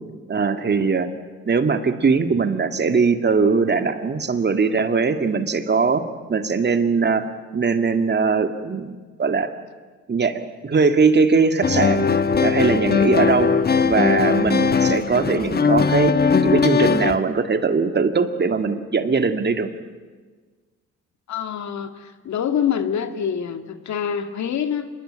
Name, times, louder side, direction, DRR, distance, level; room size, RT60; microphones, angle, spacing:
voice 1, 0.3-1.1 1.5-6.0 6.3-7.3 7.5-9.5 10.1-12.1 12.4-13.5 13.8-16.1 16.4-19.7, right 4 dB, 35° right, 8 dB, 2.2 m, -20 dB
sound 1, 11.6-17.2, left 5 dB, 30° left, 1.2 m, -19 dB
voice 2, 21.3-24.9, left 8 dB, 65° left, 8 dB, 2.1 m, -25 dB
26.5 x 21.5 x 8.9 m, 1.4 s
cardioid pair, 90°, 30 cm